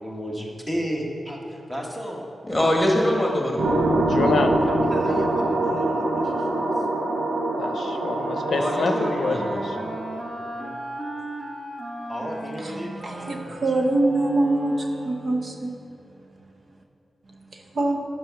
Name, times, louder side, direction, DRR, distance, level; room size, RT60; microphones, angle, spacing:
voice 1, 0.0-2.3 4.6-6.8 10.4-10.8 12.0-13.6, equal, 15° right, -1 dB, 1.4 m, -34 dB
voice 2, 2.5-3.6 8.5-9.6, left 1 dB, 5° left, -1 dB, 1.6 m, -23 dB
sound 1, 3.6-10.2, right 2 dB, 65° right, 1.2 m, -24 dB
voice 3, 4.1-4.6 7.6-9.9, left 4 dB, 65° left, 5 dB, 0.6 m, -26 dB
sound 2, 8.1-15.6, right 1 dB, 30° right, 1.1 m, -37 dB
voice 4, 13.0-15.7 17.5-18.0, right 2 dB, 50° right, 1 dB, 0.8 m, -24 dB
11.0 x 5.6 x 5.8 m, 2.8 s
wide cardioid pair, 145°, 0 cm